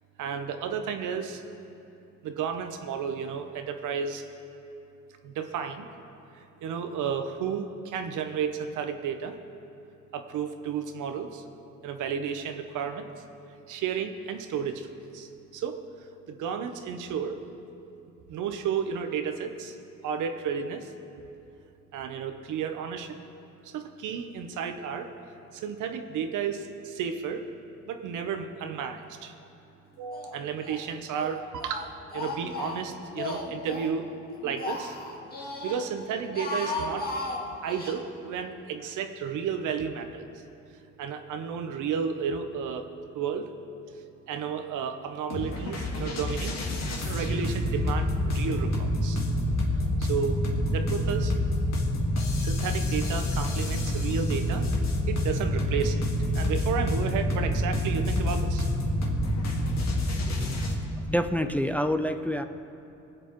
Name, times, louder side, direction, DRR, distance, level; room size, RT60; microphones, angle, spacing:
voice 1, 0.2-1.4 2.2-4.2 5.2-5.9 6.6-9.4 10.1-11.4 11.8-13.1 13.7-15.8 16.3-17.4 18.3-19.7 20.0-20.9 21.9-23.2 23.6-25.1 25.5-27.5 27.9-29.3 30.0-34.1 34.4-35.0 35.4-37.1 37.6-40.2 41.0-42.9 43.1-43.5 44.3-46.5 47.0-49.2 50.0-50.4 50.7-51.7 52.4-54.7 55.1-56.0 56.3-58.7, right 7 dB, 80° right, 7 dB, 0.9 m, -32 dB
Speech, 30.1-30.8 31.1-33.9 34.3-35.8 36.2-38.0, left 3 dB, 30° left, 1.8 m, -35 dB
sound 1, 45.3-60.8, left 1 dB, 60° left, 1.9 m, -27 dB
voice 2, 61.1-62.4, equal, 5° left, 7 dB, 0.5 m, -27 dB
23.5 x 8.0 x 3.1 m, 2.8 s
cardioid pair, 90°, 30 cm